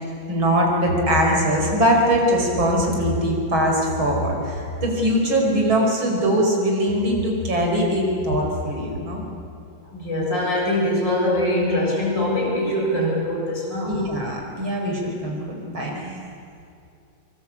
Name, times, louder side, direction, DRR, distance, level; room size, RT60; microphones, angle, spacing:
voice 1, 0.3-9.3 13.8-16.2, equal, 85° right, 0 dB, 5.9 m, -21 dB
voice 2, 9.9-14.0, left 1 dB, 65° left, -3 dB, 7.9 m, -23 dB
25.0 x 24.0 x 8.6 m, 2.5 s
omnidirectional pair, 2.1 m